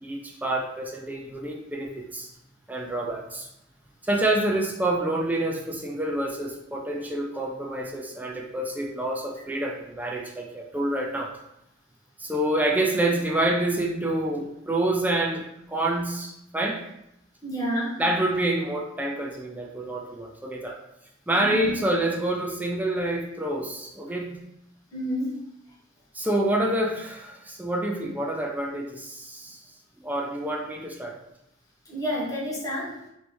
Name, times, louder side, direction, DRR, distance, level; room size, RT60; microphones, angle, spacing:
voice 1, 0.0-2.3 2.7-3.5 4.0-11.3 12.2-16.8 18.0-20.8 21.3-24.3 26.1-29.6 30.0-31.2, right 1 dB, 10° right, 0 dB, 0.4 m, -27 dB
voice 2, 17.4-17.9 21.4-21.7 24.9-25.3 31.9-32.9, equal, 15° left, -6 dB, 1.3 m, -29 dB
3.3 x 3.0 x 4.2 m, 0.82 s
head